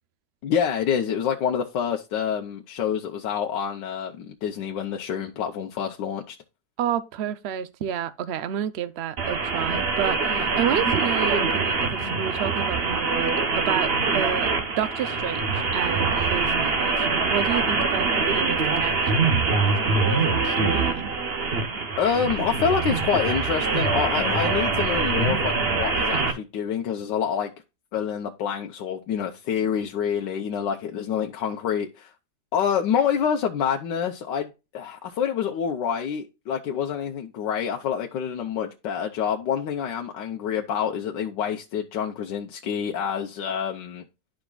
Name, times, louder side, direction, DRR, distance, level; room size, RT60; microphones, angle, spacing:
voice 1, 0.4-6.4 22.0-27.5 27.9-32.1 32.5-44.0, left 7 dB, 80° left, 1.4 m, -27 dB
voice 2, 6.8-14.5 14.8-21.1, right 9 dB, 80° right, 0.5 m, -30 dB
sound 1, 9.2-26.3, right 4 dB, 45° right, 1.0 m, -24 dB
11.5 x 5.0 x 2.3 m
omnidirectional pair, 1.9 m